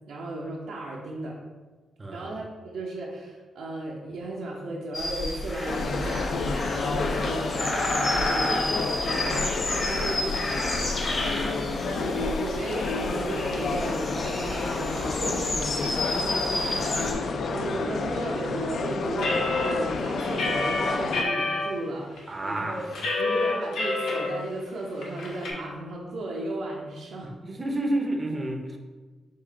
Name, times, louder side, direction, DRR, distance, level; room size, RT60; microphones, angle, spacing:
voice 1, 0.1-1.4 2.1-2.4 2.7-8.7 9.0-17.1 17.5-27.3, right 2 dB, 90° right, -4 dB, 0.7 m, -35 dB
sound 1, 4.9-17.1, left 1 dB, 35° left, 1.0 m, -30 dB
sound 2, 5.7-21.2, left 4 dB, 60° left, 0.3 m, -30 dB
sound 3, 19.2-21.6 22.2-22.3 22.6-24.3 24.6-24.7 25.0-25.5, left 3 dB, 90° left, 0.9 m, -27 dB
voice 2, 22.3-22.8 27.4-28.6, right 1 dB, 25° right, 2 dB, 0.5 m, -29 dB
4.7 x 2.5 x 4.0 m, 1.3 s
cardioid pair, 125°, 0 cm